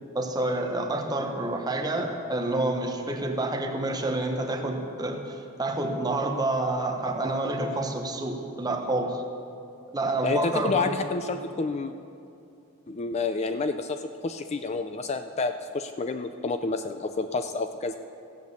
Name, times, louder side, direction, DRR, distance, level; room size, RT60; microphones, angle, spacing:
voice 1, 0.1-9.2 9.9-11.0, right 2 dB, 20° right, 4 dB, 1.0 m, -28 dB
voice 2, 10.2-11.9 12.9-18.0, left 3 dB, 30° left, 8 dB, 0.4 m, -29 dB
14.5 x 8.3 x 6.9 m, 2.6 s
head